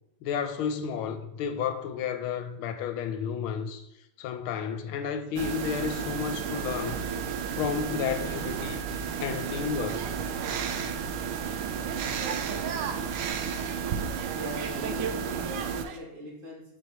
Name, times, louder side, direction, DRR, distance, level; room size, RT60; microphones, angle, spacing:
voice 1, 0.2-3.9 4.2-7.0 7.5-8.8 9.2-10.1, left 7 dB, 85° left, 1.5 m, -32 dB
sound 1, 5.4-15.9, right 7 dB, 85° right, 1.5 m, -33 dB
sound 2, 9.9-11.1 11.8-15.1 15.4-16.0, right 7 dB, 70° right, 1.2 m, -36 dB
voice 2, 14.3-16.6, left 1 dB, 40° right, 2.4 m, -40 dB
7.5 x 4.7 x 4.2 m
omnidirectional pair, 2.3 m